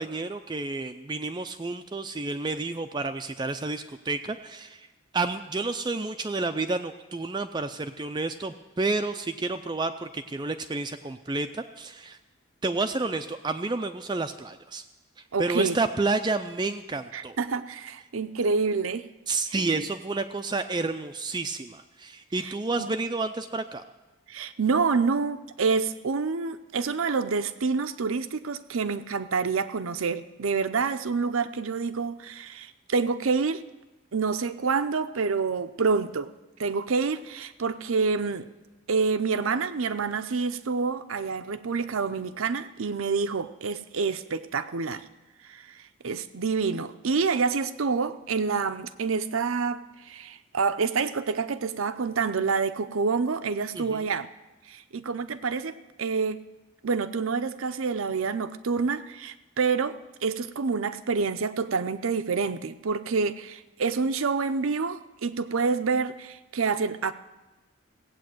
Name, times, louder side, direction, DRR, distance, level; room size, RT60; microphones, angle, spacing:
voice 1, 0.0-4.9 5.1-12.2 12.6-14.8 15.4-17.4 19.3-23.8 53.7-54.1, right 3 dB, 20° right, 8 dB, 0.4 m, -30 dB
voice 2, 15.3-15.8 17.1-19.0 19.5-19.9 22.4-22.5 22.8-22.9 24.3-33.6 34.1-36.3 36.6-38.5 38.9-45.0 45.5-45.6 46.0-49.8 50.1-54.3 54.7-56.4 56.8-67.1, right 4 dB, 80° right, 12 dB, 0.6 m, -27 dB
17.0 x 8.3 x 7.7 m, 1.1 s
head